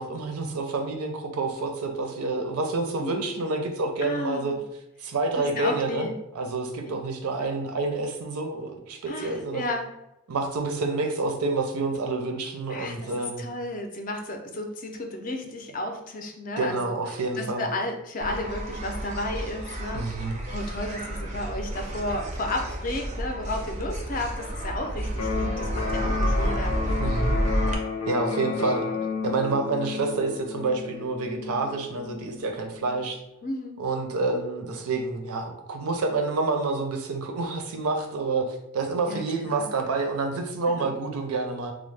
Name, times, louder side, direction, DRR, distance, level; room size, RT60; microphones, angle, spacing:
voice 1, 0.0-4.6 5.0-6.1 6.4-9.6 10.3-13.5 16.6-17.7 19.9-20.4 27.0-27.4 28.1-28.9 29.2-33.2 33.8-38.5 38.7-41.7, right 3 dB, 90° right, 4 dB, 0.5 m, -28 dB
voice 2, 4.0-4.6 5.4-6.1 9.1-9.9 12.7-16.9 17.4-20.1 20.5-26.8 28.4-28.6 28.9-29.0 29.3-29.6 33.4-33.8 39.1-39.7 40.7-40.9, left 1 dB, 40° left, 4 dB, 0.4 m, -33 dB
sound 1, 18.2-27.7, equal, 30° right, 0.4 m, -30 dB
Electric guitar, 25.1-33.1, left 5 dB, 80° left, 0.6 m, -32 dB
3.0 x 2.0 x 3.2 m, 0.87 s
head